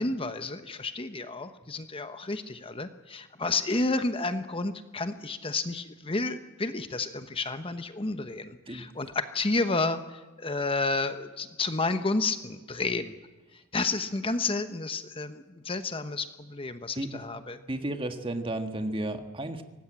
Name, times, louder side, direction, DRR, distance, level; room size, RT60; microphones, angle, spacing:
voice 1, 0.0-13.1 13.5-17.6, left 3 dB, 25° left, 9 dB, 1.0 m, -31 dB
voice 2, 17.7-19.6, right 1 dB, 25° right, 7 dB, 1.6 m, -33 dB
24.0 x 19.0 x 8.9 m, 1.2 s
head